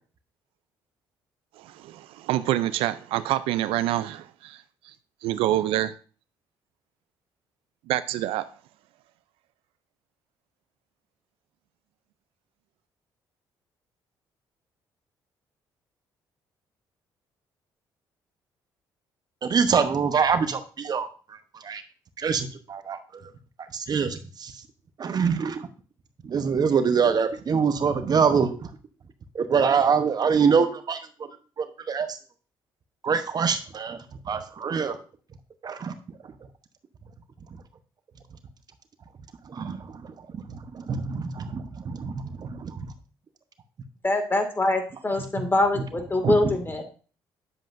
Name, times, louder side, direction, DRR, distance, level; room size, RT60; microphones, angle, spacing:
voice 1, 1.6-4.6 5.2-6.0 7.9-8.5, right 13 dB, 85° right, 14 dB, 0.5 m, -26 dB
voice 2, 19.4-21.1 21.5-21.8 22.2-23.0 23.7-24.5 25.0-25.7 26.2-28.7 29.3-31.0 31.6-32.2 33.0-35.0 35.6-35.9 39.5-42.9 46.2-46.3, right 6 dB, 45° right, 9 dB, 0.9 m, -25 dB
voice 3, 44.0-46.8, left 2 dB, 25° left, 5 dB, 2.1 m, -24 dB
9.9 x 7.4 x 2.6 m, 0.38 s
supercardioid pair, 75°, 9 cm